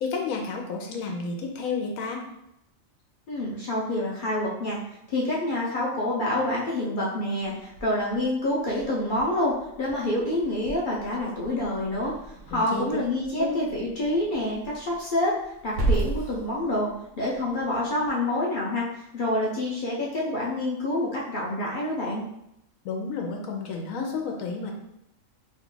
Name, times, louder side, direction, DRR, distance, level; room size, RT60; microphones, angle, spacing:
voice 1, 0.0-2.2 12.5-12.8 13.4-13.5 22.8-24.7, left 4 dB, 90° left, 1 dB, 1.0 m, -31 dB
voice 2, 3.3-4.8 5.1-12.1 12.5-15.3 15.6-18.8 19.1-22.2, left 1 dB, 50° left, -4 dB, 0.6 m, -27 dB
Growling / Hiss, 7.4-18.1, right 2 dB, 85° right, 1.1 m, -36 dB
2.8 x 2.3 x 3.7 m, 0.80 s
omnidirectional pair, 1.4 m